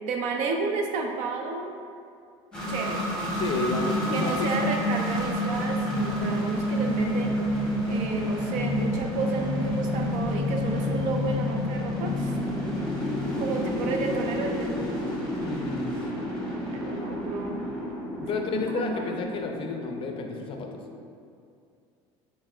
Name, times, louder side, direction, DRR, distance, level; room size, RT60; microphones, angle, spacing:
voice 1, 0.1-1.8 2.7-3.4 4.1-12.4 13.4-15.0 16.7-17.6 18.3-19.1, right 3 dB, 60° right, 3 dB, 0.5 m, -31 dB
sound 1, 2.5-21.0, left 1 dB, 5° left, 1.2 m, -29 dB
voice 2, 3.4-4.7 15.4-15.9 18.2-20.7, left 4 dB, 40° left, 3 dB, 0.4 m, -31 dB
4.1 x 4.0 x 2.2 m, 2.5 s
supercardioid pair, 110°, 14 cm